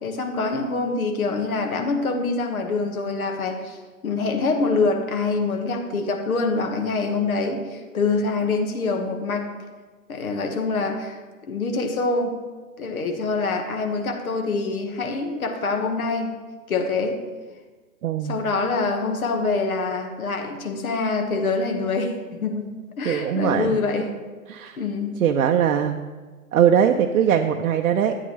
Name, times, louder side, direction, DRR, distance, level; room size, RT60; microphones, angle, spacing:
voice 1, 0.0-3.8 4.0-9.5 10.1-11.2 11.5-12.4 12.8-16.3 16.7-17.2 18.3-22.7 23.0-24.1 24.8-25.1, left 3 dB, 75° left, 4 dB, 1.6 m, -25 dB
voice 2, 18.0-18.4 23.0-23.8 24.5-24.8 25.2-26.0 26.5-28.2, right 8 dB, 75° right, 4 dB, 0.7 m, -20 dB
12.5 x 9.1 x 3.2 m, 1.3 s
hypercardioid pair, 145°, 44 cm